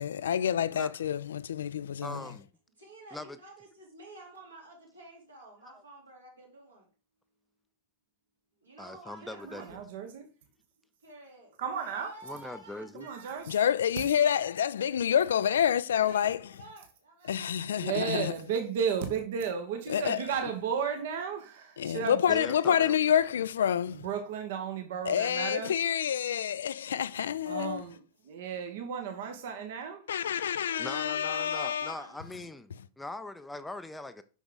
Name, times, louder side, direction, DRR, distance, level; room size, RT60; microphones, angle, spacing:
voice 1, 0.0-2.2 13.5-16.5 17.3-18.3 19.9-20.3 21.8-24.1 25.1-27.9 30.1-31.9, left 9 dB, 65° left, 0.3 m, -28 dB
voice 2, 2.0-2.4 3.1-3.4 5.7-5.8 8.8-9.8 12.2-13.1 22.3-23.0 30.8-32.7 33.0-34.2, left 2 dB, 5° left, 0.5 m, -41 dB
voice 3, 2.8-6.9 8.6-9.7 11.0-13.7 14.0-14.2 16.0-18.0 20.9-21.4 28.2-28.6 31.0-32.1, right 2 dB, 80° right, 3.4 m, -51 dB
voice 4, 9.2-10.3 11.6-12.1 12.9-13.5 17.7-22.2 24.0-25.7 27.5-28.0 28.3-29.9, right 7 dB, 55° right, 1.0 m, -34 dB
6.1 x 5.8 x 3.7 m
figure-of-eight pair, 90°, 0 cm